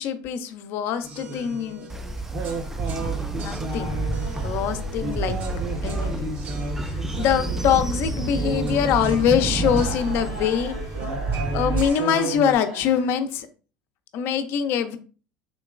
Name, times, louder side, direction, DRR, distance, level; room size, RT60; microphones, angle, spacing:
voice 1, 0.0-1.9 2.9-3.1 3.4-3.9 4.4-5.4 5.8-6.3 6.9-10.7 11.5-13.5 14.1-15.0, left 8 dB, 60° left, 8 dB, 0.6 m, -24 dB
sound 1, 1.0-12.5, right 2 dB, 40° right, 1.0 m, -34 dB
Train, 1.9-11.9, right 3 dB, 5° right, 0.4 m, -29 dB
sound 2, 3.5-13.1, right 2 dB, 90° right, 1.5 m, -41 dB
3.8 x 2.9 x 2.4 m, 0.37 s
hypercardioid pair, 90°, 5 cm